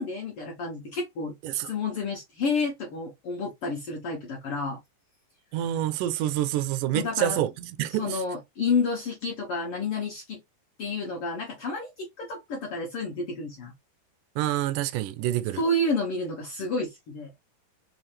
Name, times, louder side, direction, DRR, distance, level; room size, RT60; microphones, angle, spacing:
voice 1, 0.0-4.8 6.9-7.4 7.9-10.4 10.8-13.7 15.5-17.3, left 3 dB, 70° left, 1.4 m, -30 dB
voice 2, 5.5-8.2 14.4-15.6, right 12 dB, 85° right, 2.1 m, -27 dB
4.9 x 3.2 x 3.1 m
omnidirectional pair, 3.8 m